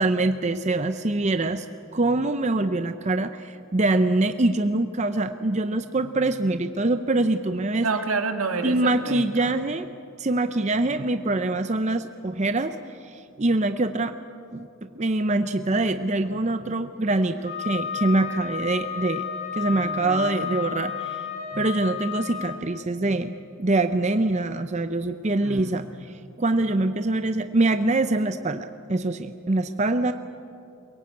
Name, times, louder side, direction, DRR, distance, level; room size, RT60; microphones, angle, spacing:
voice 1, 0.0-1.7 1.9-7.9 8.6-9.9 10.2-12.8 13.0-14.1 14.5-19.2 19.5-21.3 21.5-30.1, right 2 dB, 35° right, 9 dB, 0.6 m, -24 dB
voice 2, 7.8-9.5 19.7-20.7 25.4-25.9, right 4 dB, 85° right, 5 dB, 1.9 m, -30 dB
Wind instrument woodwind instrument, 17.4-22.6, left 8 dB, 45° left, 5.0 m, -32 dB
23.0 x 22.0 x 8.5 m, 2.6 s
head